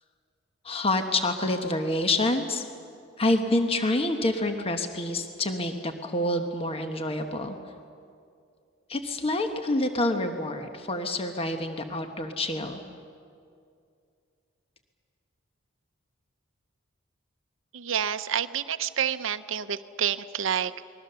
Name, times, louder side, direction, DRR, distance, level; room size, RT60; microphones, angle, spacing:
voice 1, 0.6-2.6 3.2-7.7 8.9-12.8, left 2 dB, 30° left, 6 dB, 1.2 m, -27 dB
voice 2, 17.7-20.8, right 9 dB, 70° right, 10 dB, 0.7 m, -29 dB
28.5 x 21.0 x 6.9 m, 2.4 s
head